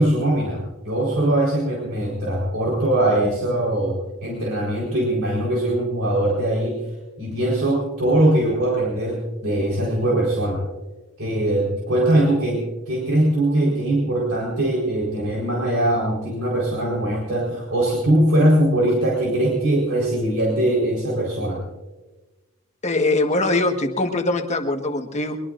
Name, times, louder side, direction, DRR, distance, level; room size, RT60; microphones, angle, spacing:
voice 1, 0.0-6.8 7.2-10.6 11.2-21.6, right 1 dB, 65° right, -4 dB, 4.4 m, -21 dB
voice 2, 22.8-25.4, left 2 dB, 30° left, 5 dB, 1.5 m, -22 dB
22.5 x 22.5 x 2.6 m, 1.2 s
head